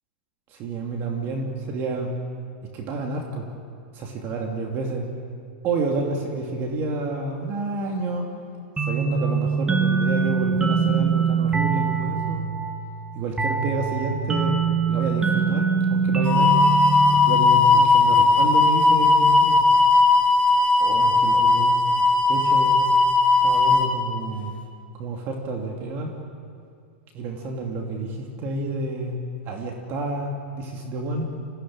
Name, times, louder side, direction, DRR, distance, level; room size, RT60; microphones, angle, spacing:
voice 1, 0.5-2.1 2.7-3.5 3.9-5.1 5.6-8.3 8.8-12.4 13.1-14.6 14.9-16.6 17.1-19.7 20.8-21.8 22.3-22.8 23.4-24.5 25.0-26.1 27.1-31.3, right 2 dB, 40° right, 1 dB, 2.8 m, -29 dB
sound 1, 8.8-18.1, right 5 dB, 10° right, 1.8 m, -24 dB
sound 2, 16.3-23.9, left 3 dB, 25° left, 3.6 m, -17 dB
26.0 x 17.0 x 8.8 m, 2.3 s
hypercardioid pair, 120°, 5 cm